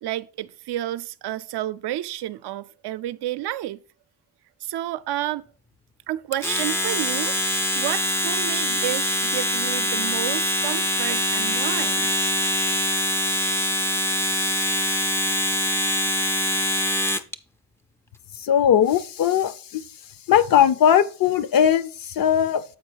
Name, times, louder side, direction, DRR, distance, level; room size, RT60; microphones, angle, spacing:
voice 1, 0.0-3.8 4.6-5.5 6.1-7.3 7.7-12.1, right 13 dB, 75° right, 0.5 m, -30 dB
Domestic sounds home sounds, 6.3-17.3, left 1 dB, 5° left, 0.3 m, -24 dB
voice 2, 18.4-19.8 20.3-22.6, left 9 dB, 60° left, 0.6 m, -19 dB
7.4 x 4.7 x 4.5 m
cardioid pair, 130°, 40 cm